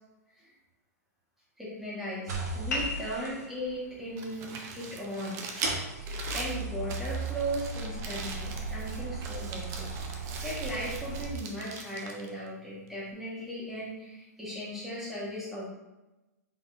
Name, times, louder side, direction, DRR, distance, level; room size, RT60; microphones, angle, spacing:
voice 1, 1.6-15.7, equal, 5° right, -8 dB, 1.5 m, -37 dB
sound 1, 2.3-3.3 4.6-4.7 5.6-11.3, right 3 dB, 70° right, 1.0 m, -36 dB
sound 2, 2.7-7.7, left 2 dB, 75° left, 0.9 m, -42 dB
Crumpling crinkling, 4.0-13.1, right 4 dB, 30° right, 0.6 m, -43 dB
3.9 x 3.6 x 2.6 m, 1.0 s
hypercardioid pair, 135°, 9 cm